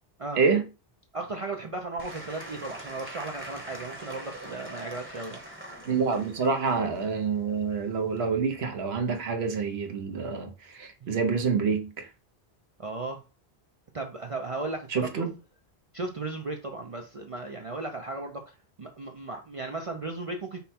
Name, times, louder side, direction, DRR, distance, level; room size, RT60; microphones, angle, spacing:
voice 1, 0.4-0.7 5.8-12.1 14.9-15.3, right 5 dB, 80° right, 1.1 m, -27 dB
voice 2, 1.1-5.4 11.0-11.1 12.8-13.2 13.9-15.3 15.9-20.6, right 3 dB, 40° right, 0.5 m, -36 dB
Applause / Crowd, 2.0-8.3, right 1 dB, 10° right, 0.9 m, -43 dB
5.4 x 2.2 x 4.2 m
omnidirectional pair, 1.1 m